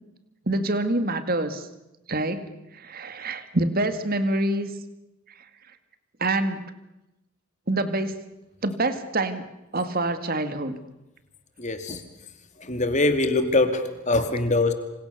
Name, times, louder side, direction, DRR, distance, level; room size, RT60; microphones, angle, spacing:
voice 1, 0.5-1.7 2.1-4.7 6.2-6.7 7.7-8.2 8.6-9.5 9.7-10.8, right 2 dB, 40° right, 10 dB, 2.0 m, -26 dB
voice 2, 11.6-12.0 12.6-14.7, left 2 dB, 30° left, 8 dB, 2.5 m, -23 dB
27.5 x 26.5 x 6.8 m, 0.96 s
head